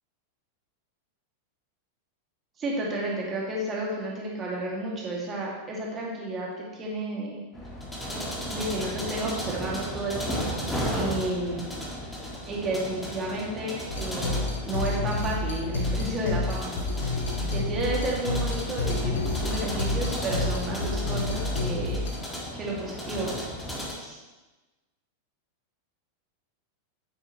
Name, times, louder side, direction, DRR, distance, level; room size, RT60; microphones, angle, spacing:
voice 1, 2.6-6.5 6.7-7.4 8.5-11.7 12.5-16.7 17.5-22.0 22.5-23.3 24.0-24.2, right 2 dB, 25° right, -3 dB, 2.5 m, -32 dB
sound 1, 7.5-23.9, equal, 5° left, 1.9 m, -35 dB
sound 2, 13.9-22.1, left 3 dB, 60° left, 1.9 m, -29 dB
9.8 x 8.0 x 3.2 m, 1.2 s
figure-of-eight pair, 90°, 0 cm